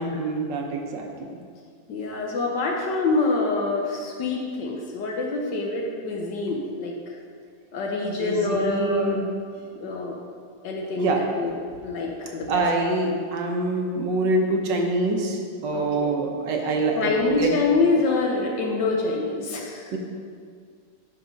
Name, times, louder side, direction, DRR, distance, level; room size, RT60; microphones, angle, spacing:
voice 1, 0.0-1.4 8.2-9.3 11.0-11.2 12.5-17.5 19.9-20.0, right 2 dB, 80° right, 1 dB, 1.6 m, -25 dB
voice 2, 1.9-7.2 7.7-9.2 9.8-10.2 10.6-11.5 11.8-12.7 15.7-16.1 16.9-20.0, left 3 dB, 75° left, -1 dB, 1.4 m, -26 dB
10.5 x 3.8 x 5.2 m, 2.1 s
omnidirectional pair, 1.9 m